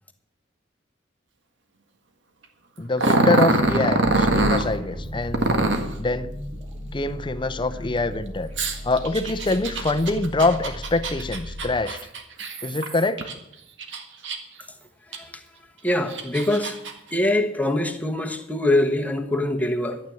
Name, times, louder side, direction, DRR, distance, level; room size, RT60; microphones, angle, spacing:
voice 1, 2.8-5.6 6.0-6.3 6.9-12.0 12.6-13.2, left 2 dB, 25° left, 0.6 m, -25 dB
Growling, 3.0-4.7 5.3-5.9 8.6-13.3 13.8-14.6 15.1-15.2 15.9-16.9, right 2 dB, 75° right, 1.7 m, -23 dB
sound 1, 3.6-11.8, left 1 dB, 35° right, 2.7 m, -35 dB
voice 2, 15.1-15.4 15.8-16.8 17.1-20.0, left 1 dB, 10° left, 1.3 m, -23 dB
12.0 x 9.1 x 7.1 m
head